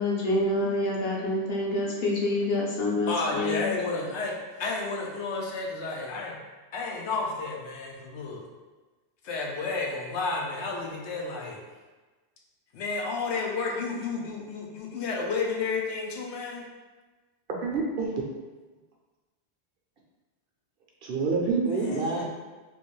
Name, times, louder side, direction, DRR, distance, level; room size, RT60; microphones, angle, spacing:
voice 1, 0.0-3.7, left 2 dB, 60° left, -4 dB, 1.0 m, -27 dB
voice 2, 3.1-6.4 6.7-8.4 9.2-11.6 12.7-16.6 21.7-22.2, left 3 dB, 85° left, -1 dB, 0.9 m, -31 dB
voice 3, 17.5-18.1 21.0-22.2, right 4 dB, 60° right, -1 dB, 0.8 m, -27 dB
3.5 x 2.5 x 3.1 m, 1.3 s
omnidirectional pair, 1.1 m